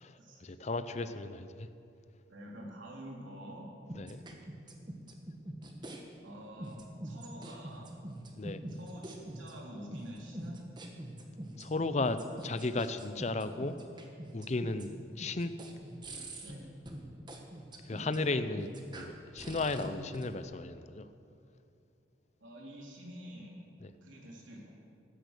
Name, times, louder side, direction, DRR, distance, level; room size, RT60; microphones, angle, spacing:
voice 1, 0.0-1.7 3.9-4.2 8.4-8.6 11.6-13.8 14.3-15.5 17.9-21.1 23.8-23.9, left 2 dB, 35° left, 12 dB, 0.6 m, -35 dB
voice 2, 2.3-3.7 6.2-8.0 8.2-10.7 16.4-16.7 22.4-23.6 24.0-24.7, equal, 85° right, -2 dB, 3.4 m, -47 dB
sound 1, 3.9-6.0 6.6-20.3, right 1 dB, 25° right, 1.4 m, -44 dB
15.5 x 12.5 x 6.6 m, 2.5 s
head